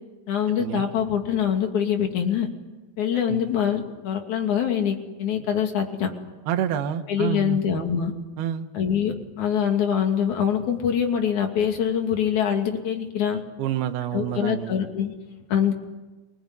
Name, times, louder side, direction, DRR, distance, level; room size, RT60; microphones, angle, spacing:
voice 1, 0.3-2.5 3.0-6.1 7.1-8.1 8.7-13.4 14.1-15.1 15.5-15.7, left 8 dB, 50° left, 3 dB, 3.7 m, -24 dB
voice 2, 6.5-7.6 8.4-8.7 13.6-14.7, right 10 dB, 75° right, 6 dB, 3.2 m, -28 dB
26.5 x 20.0 x 9.8 m, 1.2 s
omnidirectional pair, 4.7 m